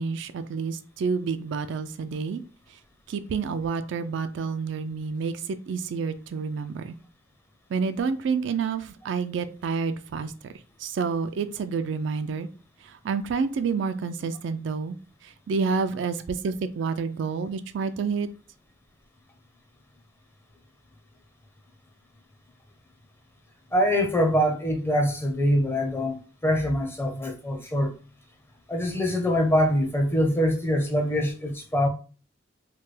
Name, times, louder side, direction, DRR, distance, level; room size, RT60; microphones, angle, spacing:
voice 1, 0.0-2.4 3.1-7.0 7.7-10.3 10.8-12.5 12.8-15.0 15.2-18.3, right 5 dB, 65° right, 0.3 m, -29 dB
voice 2, 23.7-26.2 26.4-27.9 28.7-31.9, equal, 10° left, 0.5 m, -24 dB
3.2 x 2.2 x 3.2 m
head